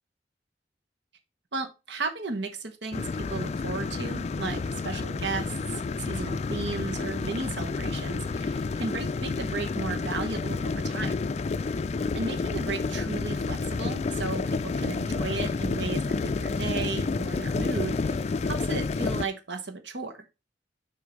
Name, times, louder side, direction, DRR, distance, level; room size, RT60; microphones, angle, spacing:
voice 1, 1.5-11.3 12.1-20.3, right 3 dB, 85° right, 6 dB, 1.2 m, -35 dB
sound 1, 2.9-19.3, left 4 dB, 40° left, 0.3 m, -30 dB
6.7 x 3.7 x 5.2 m, 0.27 s
head